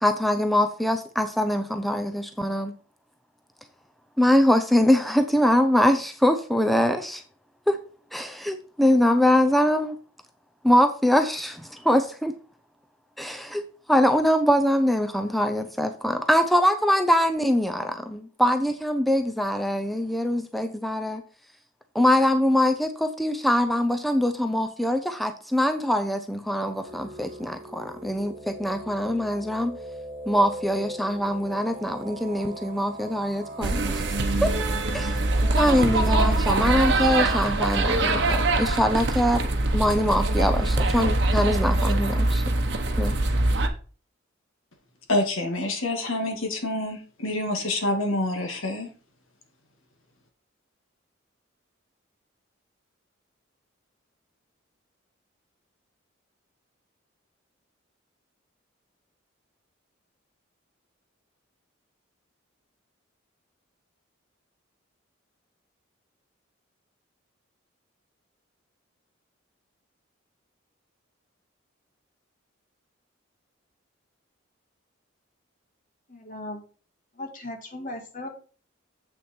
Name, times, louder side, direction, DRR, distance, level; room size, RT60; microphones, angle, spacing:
voice 1, 0.0-2.7 4.2-7.2 7.7-7.8 8.1-9.9 10.6-12.3 13.2-13.6 13.9-21.2 21.9-29.8 30.3-34.0 34.4-34.5 34.9-35.2 35.5-39.4 39.7-42.4 43.0-43.1, left 1 dB, ahead, 0.5 m, -23 dB
sound 1, 26.8-36.2, right 1 dB, 30° right, 2.9 m, -40 dB
sound 2, 33.6-43.7, right 2 dB, 55° right, 1.0 m, -23 dB
voice 2, 45.1-48.9, left 1 dB, 85° left, 2.0 m, -27 dB
voice 3, 76.1-76.6 77.2-78.3, left 1 dB, 40° left, 1.7 m, -37 dB
7.9 x 6.3 x 4.4 m
head